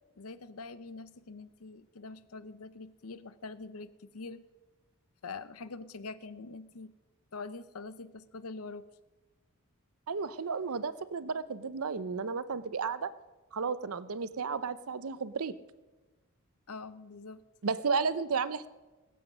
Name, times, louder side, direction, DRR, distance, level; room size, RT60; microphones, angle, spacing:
voice 1, 0.2-4.5 5.2-6.9 7.3-8.8 16.7-17.4, left 3 dB, 80° left, 14 dB, 0.8 m, -44 dB
voice 2, 10.1-13.1 13.5-15.5 17.6-18.7, right 5 dB, 75° right, 14 dB, 0.7 m, -33 dB
20.5 x 8.1 x 6.1 m, 1.2 s
head